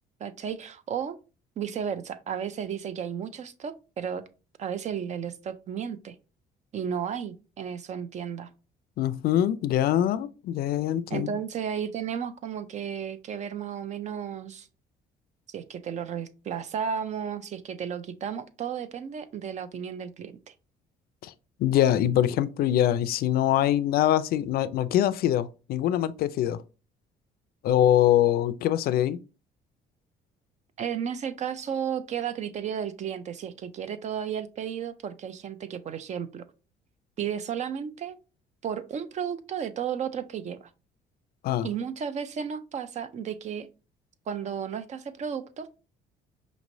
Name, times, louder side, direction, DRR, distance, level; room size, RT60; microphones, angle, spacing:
voice 1, 0.2-1.2 1.6-4.2 4.6-6.1 6.7-8.5 11.1-14.7 15.5-20.5 30.8-36.4 37.2-38.2 38.6-40.7 41.6-43.7 44.3-45.7, right 8 dB, 45° right, 0.5 m, -33 dB
voice 2, 9.0-11.3 21.2-21.3 21.6-26.6 27.6-29.2 41.4-41.7, left 11 dB, 65° left, 0.4 m, -23 dB
5.1 x 3.0 x 2.6 m
cardioid pair, 110°, 17 cm